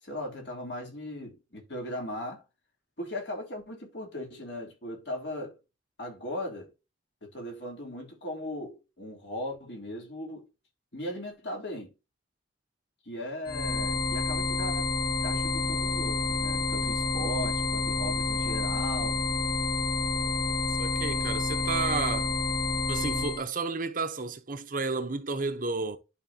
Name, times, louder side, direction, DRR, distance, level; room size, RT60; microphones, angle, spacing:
voice 1, 0.0-2.4 3.0-5.6 6.0-6.7 7.2-10.5 10.9-11.9 13.0-14.9 15.2-19.2, left 1 dB, 70° left, 3.4 m, -38 dB
sound 1, 13.5-23.4, left 3 dB, 25° left, 0.7 m, -29 dB
voice 2, 20.8-22.3 22.9-26.0, right 4 dB, 50° right, 0.9 m, -32 dB
11.5 x 4.3 x 2.8 m
head